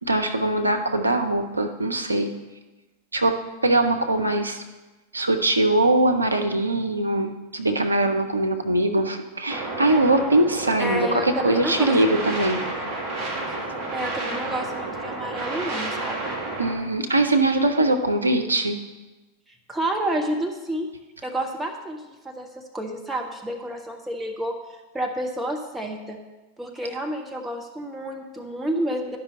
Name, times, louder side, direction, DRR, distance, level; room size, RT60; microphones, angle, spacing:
voice 1, 0.0-2.3 3.1-4.6 5.1-12.6 16.6-18.8, right 2 dB, 80° right, 6 dB, 0.7 m, -22 dB
sound 1, 9.5-16.8, right 2 dB, 30° right, 2.0 m, -31 dB
voice 2, 10.8-12.2 12.7-12.8 13.5-13.6 13.9-16.3 19.7-20.9 21.2-24.6 24.9-26.2 26.6-29.2, right 1 dB, 10° right, 2 dB, 0.9 m, -30 dB
11.0 x 5.4 x 4.4 m, 1.1 s
figure-of-eight pair, 90°, 0 cm